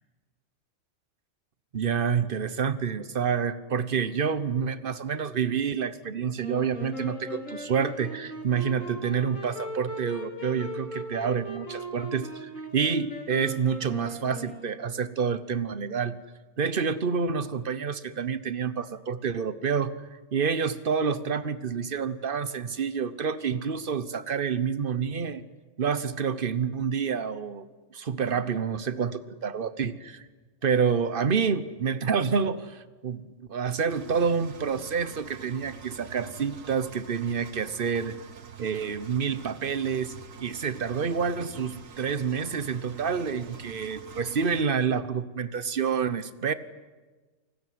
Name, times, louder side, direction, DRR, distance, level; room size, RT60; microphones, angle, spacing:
voice 1, 1.7-16.2 16.6-19.9 20.3-25.4 25.8-27.7 27.9-30.2 30.6-38.1 38.6-40.1 40.4-46.5, right 6 dB, 45° right, 14 dB, 1.1 m, -28 dB
Wind instrument woodwind instrument, 6.4-15.1, right 1 dB, 75° left, 5.3 m, -39 dB
Engine, 33.9-44.6, right 7 dB, 75° right, 1.6 m, -46 dB
29.0 x 19.5 x 9.4 m, 1.3 s
omnidirectional pair, 1.4 m